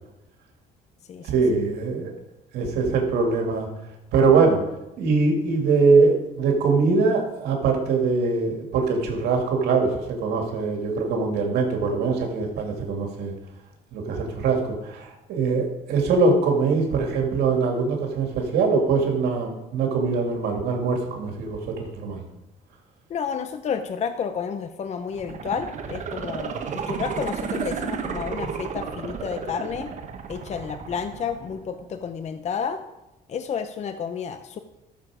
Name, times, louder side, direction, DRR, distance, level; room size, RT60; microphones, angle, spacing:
voice 1, 1.2-2.1 2.5-3.7 4.1-4.6 5.0-13.3 13.9-22.2, right 4 dB, 75° right, 1 dB, 2.5 m, -22 dB
voice 2, 23.1-29.9 30.3-32.8 33.3-34.6, left 7 dB, 40° left, 9 dB, 0.7 m, -31 dB
CP Moon Buggy, 25.1-32.1 32.5-32.6, right 6 dB, 45° right, 1.4 m, -33 dB
13.0 x 6.9 x 4.9 m, 0.95 s
cardioid pair, 110°, 17 cm